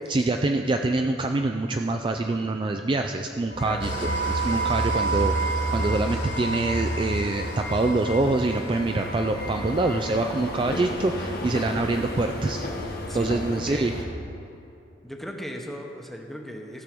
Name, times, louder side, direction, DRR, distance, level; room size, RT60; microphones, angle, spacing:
voice 1, 0.1-12.6 13.1-13.9, right 2 dB, 25° right, 5 dB, 0.3 m, -25 dB
sound 1, 3.5-14.0, right 2 dB, 55° left, 1.3 m, -31 dB
voice 2, 3.6-4.2 13.1-13.9 15.0-16.8, equal, ahead, 2 dB, 0.9 m, -37 dB
Engine starting / Idling, 3.8-9.2, equal, 75° left, 2.8 m, -34 dB
16.0 x 6.2 x 5.2 m, 2.7 s
head